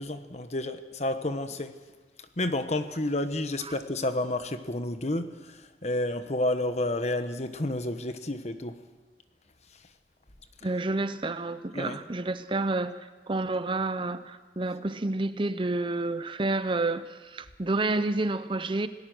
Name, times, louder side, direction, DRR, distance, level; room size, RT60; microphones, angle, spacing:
voice 1, 0.0-1.8 2.4-8.8 11.7-12.0, left 1 dB, 40° left, 1.2 m, -30 dB
voice 2, 10.6-18.9, right 2 dB, 30° right, 0.7 m, -29 dB
27.5 x 18.5 x 6.3 m
head